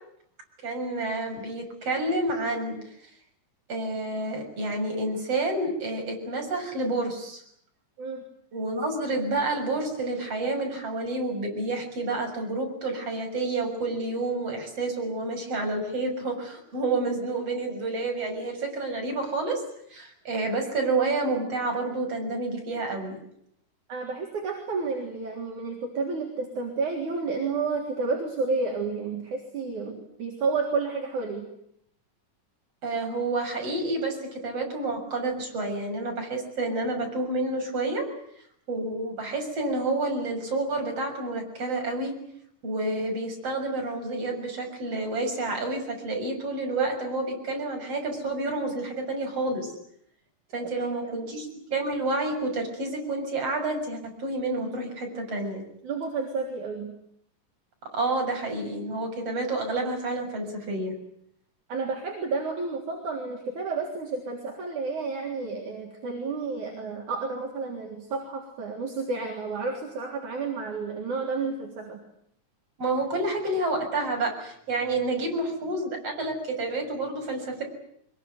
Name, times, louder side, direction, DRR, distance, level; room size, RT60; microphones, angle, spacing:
voice 1, 0.6-2.8 3.7-7.4 8.5-19.6 19.9-23.2 32.8-38.1 38.7-42.2 42.6-49.7 50.5-55.6 57.9-60.9 72.8-77.6, right 2 dB, 45° right, 2 dB, 7.7 m, -29 dB
voice 2, 23.9-31.5 55.8-56.9 61.7-72.0, right 4 dB, 65° right, 0 dB, 4.9 m, -31 dB
24.0 x 22.5 x 9.5 m, 0.72 s
omnidirectional pair, 3.8 m